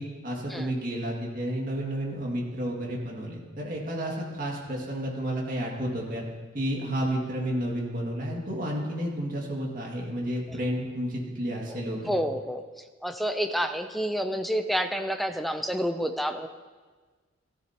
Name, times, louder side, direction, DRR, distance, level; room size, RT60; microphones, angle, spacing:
voice 1, 0.0-6.2 6.5-12.1, equal, 40° right, -2 dB, 2.2 m, -31 dB
voice 2, 11.7-16.5, equal, ahead, 7 dB, 0.5 m, -29 dB
14.5 x 14.0 x 2.9 m, 1.4 s
head